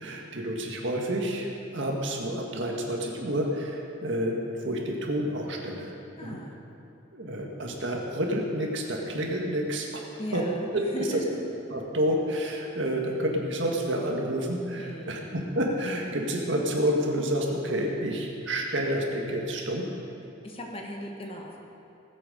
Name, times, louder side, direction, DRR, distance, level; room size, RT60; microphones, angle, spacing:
voice 1, 0.0-4.4 4.6-5.9 6.2-6.4 7.1-10.4 10.7-11.2 11.7-19.9, equal, 65° right, 0 dB, 1.8 m, -29 dB
voice 2, 6.2-6.6 10.2-11.5 14.8-15.3 20.4-21.6, equal, 30° left, 1 dB, 1.3 m, -38 dB
19.0 x 8.1 x 5.2 m, 2.8 s
head